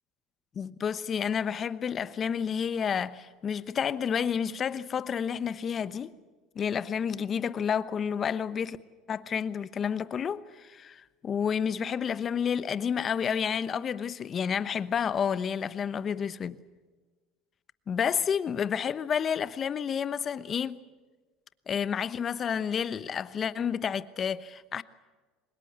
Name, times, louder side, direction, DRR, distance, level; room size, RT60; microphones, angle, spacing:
voice 1, 0.5-6.1 6.5-8.8 9.1-16.6 17.9-20.8 21.7-24.8, left 7 dB, 40° left, 1.0 m, -30 dB
23.5 x 20.5 x 8.1 m
supercardioid pair, 95°, 0 cm